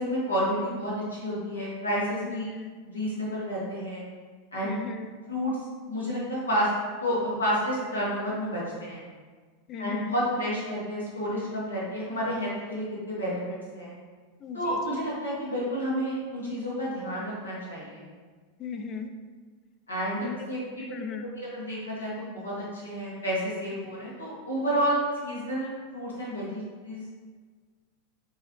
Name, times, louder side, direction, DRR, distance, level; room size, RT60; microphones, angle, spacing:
voice 1, 0.0-2.5 2.8-4.0 4.5-4.7 5.3-5.6 5.9-6.7 7.0-9.0 9.8-13.9 14.5-18.1 19.9-20.6 21.4-27.1, equal, 80° left, -7 dB, 1.4 m, -30 dB
voice 2, 2.2-2.8 4.6-5.2 9.7-10.2 14.4-15.2 18.6-19.1 20.2-20.5 20.9-21.3, left 6 dB, 35° left, 6 dB, 0.4 m, -38 dB
4.5 x 2.8 x 3.1 m, 1.5 s
figure-of-eight pair, 85°, 0 cm